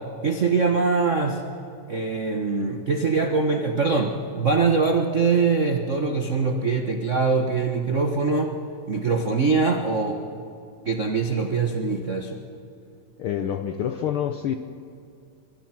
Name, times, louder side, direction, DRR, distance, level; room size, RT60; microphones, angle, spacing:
voice 1, 0.2-1.4 1.9-8.5 8.9-10.2 10.8-12.4, right 4 dB, 70° right, 4 dB, 0.7 m, -23 dB
voice 2, 13.2-14.6, left 9 dB, 75° left, 7 dB, 1.2 m, -27 dB
24.5 x 23.0 x 6.0 m, 2.5 s
omnidirectional pair, 3.4 m